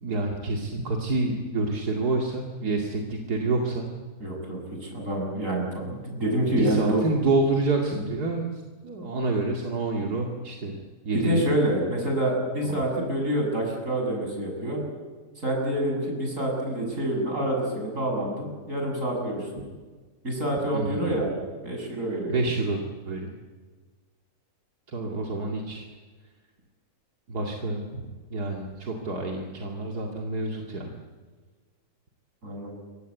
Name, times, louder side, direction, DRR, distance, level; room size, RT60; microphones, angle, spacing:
voice 1, 0.0-3.9 6.6-10.8 11.0-11.4 12.6-12.7 20.7-21.1 22.3-23.3 24.9-25.9 27.3-30.9, right 2 dB, 80° right, 1 dB, 2.8 m, -28 dB
voice 2, 4.2-7.0 11.1-14.8 15.4-19.5 20.2-21.3 21.6-22.4 32.4-32.8, right 1 dB, 55° right, 1 dB, 7.5 m, -27 dB
27.5 x 24.0 x 8.3 m, 1.4 s
omnidirectional pair, 1.6 m